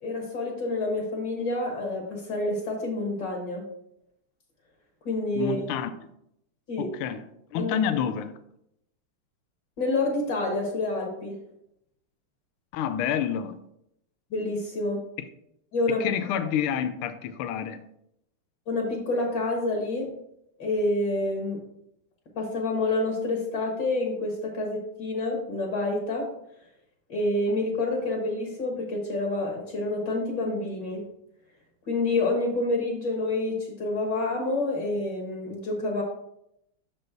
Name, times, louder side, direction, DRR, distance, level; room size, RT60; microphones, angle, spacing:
voice 1, 0.0-3.6 5.1-5.7 6.7-6.9 7.6-7.8 9.8-11.4 14.3-15.0 15.7-16.1 18.7-20.1 20.6-21.6 22.3-26.3 27.1-31.0 31.9-36.0, left 2 dB, 55° left, 0 dB, 2.0 m, -28 dB
voice 2, 5.4-5.9 6.8-7.2 7.5-8.3 12.7-13.6 16.0-17.8, left 9 dB, 80° left, 11 dB, 1.5 m, -28 dB
6.6 x 5.3 x 4.4 m, 0.78 s
omnidirectional pair, 2.4 m